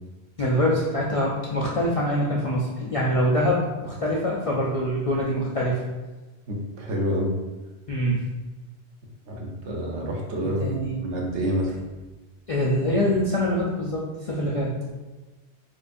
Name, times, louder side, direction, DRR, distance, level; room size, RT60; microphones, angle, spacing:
voice 1, 0.4-5.8 7.9-8.2 10.6-11.0 12.5-14.7, equal, 60° left, -4 dB, 0.3 m, -24 dB
voice 2, 6.5-7.3 9.3-11.7, equal, 80° right, -1 dB, 1.1 m, -28 dB
4.5 x 2.5 x 2.5 m, 1.2 s
omnidirectional pair, 1.2 m